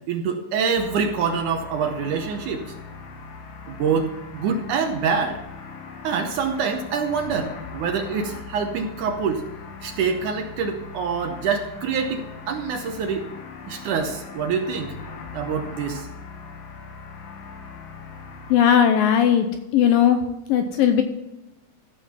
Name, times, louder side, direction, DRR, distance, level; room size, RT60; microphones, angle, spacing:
voice 1, 0.1-2.6 3.7-4.1 4.3-5.4 6.0-9.4 9.8-13.3 13.7-14.9 15.3-16.1, right 6 dB, 80° right, 5 dB, 1.9 m, -25 dB
sound 1, 0.8-18.5, left 5 dB, 60° left, 2.5 m, -40 dB
voice 2, 18.5-19.5 19.7-20.2 20.5-21.0, left 9 dB, 75° left, 7 dB, 2.2 m, -17 dB
14.5 x 5.8 x 5.6 m, 1.0 s
omnidirectional pair, 4.5 m